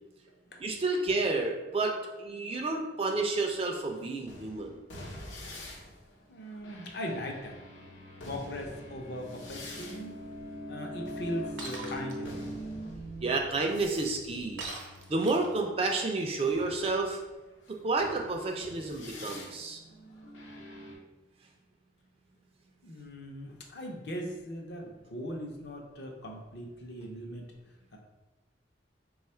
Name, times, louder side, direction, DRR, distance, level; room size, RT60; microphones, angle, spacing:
voice 1, 0.6-4.8 13.2-14.6 15.1-17.2 17.7-19.8, right 3 dB, 30° right, 2 dB, 0.4 m, -30 dB
sound 1, 3.6-15.7 16.4-20.9, equal, 80° left, 0.9 m, -44 dB
voice 2, 6.3-7.6 8.2-10.1 10.7-12.6 22.8-27.5 27.9-28.0, equal, 55° left, 0 dB, 0.6 m, -39 dB
Shatter, 11.6-12.2 14.6-15.6, right 2 dB, 75° right, 0.7 m, -40 dB
3.4 x 2.3 x 4.3 m, 1.1 s
head